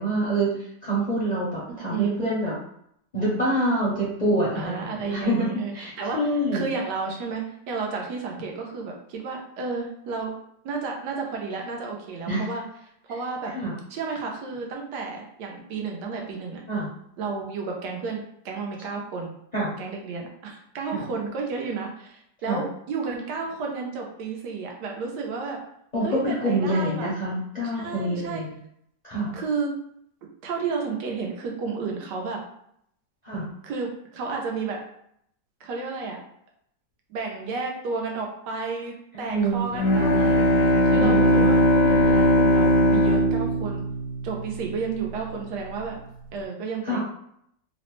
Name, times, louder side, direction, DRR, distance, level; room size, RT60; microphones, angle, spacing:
voice 1, 0.0-2.5 3.1-5.5 5.7-6.7 12.3-12.5 13.5-13.7 16.7-16.9 19.5-19.7 20.9-21.0 22.5-22.6 25.9-28.6 29.0-29.4 33.2-33.5 39.2-40.4 40.9-41.5 46.8-47.0, right 1 dB, 45° left, -8 dB, 0.5 m, -26 dB
voice 2, 1.7-2.4 4.5-10.3 10.6-12.6 13.0-13.5 13.9-16.6 17.2-19.3 19.8-25.6 26.0-27.1 27.7-28.4 29.3-29.7 30.4-32.4 33.6-34.8 35.6-36.2 37.1-40.5 40.8-43.9 44.2-46.0 46.3-47.0, right 4 dB, 85° right, 1 dB, 1.2 m, -32 dB
Bowed string instrument, 39.7-44.8, equal, 80° left, 1.2 m, -20 dB
3.2 x 2.0 x 3.0 m, 0.72 s
omnidirectional pair, 1.8 m